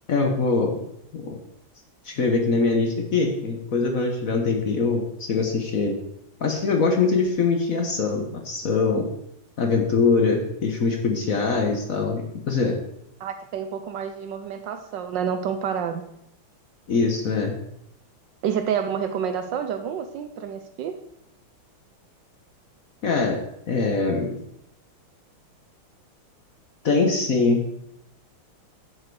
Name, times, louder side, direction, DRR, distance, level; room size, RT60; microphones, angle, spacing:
voice 1, 0.1-0.8 1.1-1.4 2.0-5.9 6.4-9.1 9.6-12.8 16.9-17.5 23.0-23.4 23.7-24.4 26.8-27.6, left 4 dB, 50° left, 3 dB, 1.1 m, -23 dB
voice 2, 13.2-16.0 18.4-21.0, right 8 dB, 70° right, 8 dB, 1.1 m, -28 dB
7.8 x 7.5 x 4.7 m, 0.78 s
omnidirectional pair, 2.3 m